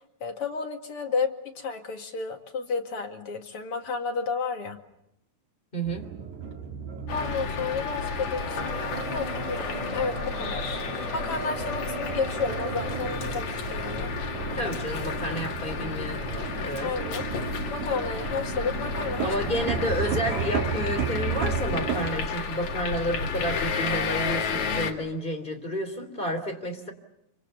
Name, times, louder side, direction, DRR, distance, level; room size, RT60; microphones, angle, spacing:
voice 1, 0.0-4.8 7.1-14.1 14.5-14.6 16.8-19.3, left 5 dB, 50° left, 3 dB, 3.0 m, -32 dB
voice 2, 5.7-6.1 14.2-16.9 19.2-26.9, equal, 15° left, 5 dB, 3.4 m, -31 dB
sound 1, 5.8-22.1, right 6 dB, 75° right, 4.2 m, -34 dB
sound 2, 7.1-24.9, left 5 dB, 70° left, 3.4 m, -32 dB
sound 3, 8.2-13.5, right 3 dB, 35° right, 8.3 m, -37 dB
27.0 x 25.5 x 6.9 m, 0.81 s
omnidirectional pair, 3.4 m